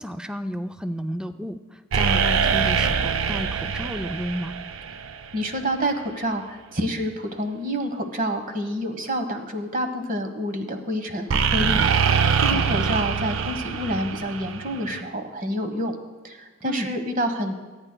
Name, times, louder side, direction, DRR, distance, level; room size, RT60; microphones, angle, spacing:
voice 1, 0.0-4.5 12.5-13.0 16.6-16.9, equal, 5° right, 8 dB, 0.3 m, -32 dB
sound 1, 1.9-5.6 11.3-15.0, right 6 dB, 80° right, 0.5 m, -24 dB
voice 2, 5.3-16.0 16.2-17.5, equal, 45° right, 6 dB, 1.2 m, -28 dB
28.0 x 9.8 x 2.2 m, 1.3 s
head